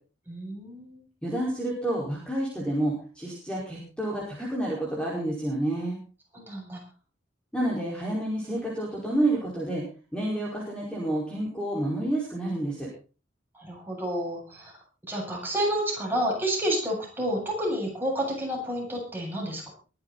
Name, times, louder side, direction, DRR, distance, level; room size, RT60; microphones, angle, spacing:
voice 1, 0.3-1.0 6.3-6.8 13.5-14.7 15.1-19.7, equal, 10° right, -2 dB, 7.9 m, -30 dB
voice 2, 1.2-6.0 7.5-9.8 10.1-12.9, right 1 dB, 5° left, -4 dB, 5.0 m, -29 dB
23.0 x 11.0 x 4.2 m, 0.36 s
head